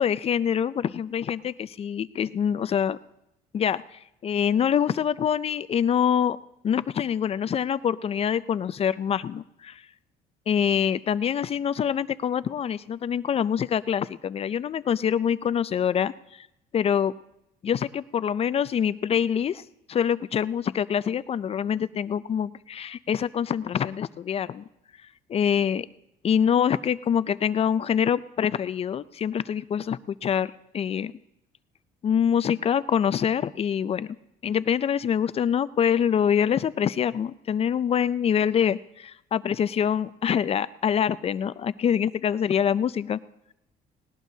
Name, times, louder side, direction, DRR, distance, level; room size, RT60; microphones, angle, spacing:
voice 1, 0.0-3.0 3.5-6.4 6.6-9.8 10.5-16.1 16.4-16.5 16.7-17.1 17.6-19.6 19.9-24.6 25.3-25.9 26.2-31.1 32.0-34.2 34.4-43.2, left 8 dB, 35° left, 16 dB, 0.4 m, -25 dB
19.0 x 18.0 x 2.8 m, 0.84 s
cardioid pair, 110°, 17 cm